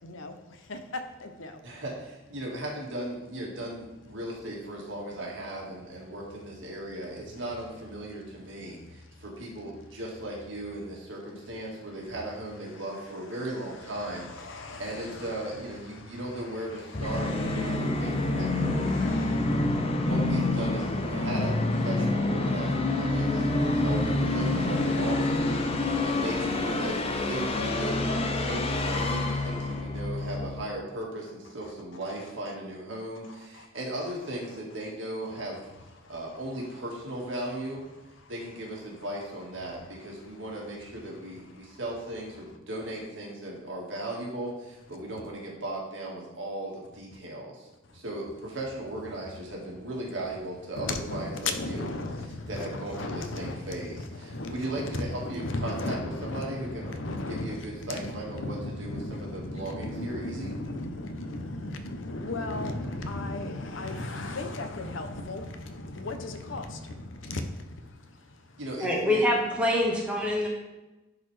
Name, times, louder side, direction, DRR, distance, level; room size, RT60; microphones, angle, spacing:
voice 1, 0.0-1.6 13.9-15.5 15.8-20.1 23.0-26.4 26.8-26.9 29.0-29.8 31.6-31.7 33.5-33.7 36.0-36.1 47.9-48.0 50.8-68.5 70.4-70.5, left 2 dB, 85° left, 7 dB, 0.8 m, -37 dB
voice 2, 1.6-19.4 20.0-27.0 27.3-35.7 36.1-37.9 38.3-47.7 47.9-51.9 52.5-60.6 68.6-69.2, right 1 dB, 75° right, -2 dB, 1.8 m, -37 dB
Musical instrument, 16.9-30.6, left 2 dB, 30° left, 0.6 m, -27 dB
voice 3, 68.8-70.5, left 1 dB, 5° right, -3 dB, 1.4 m, -25 dB
10.5 x 4.1 x 3.3 m, 1.1 s
head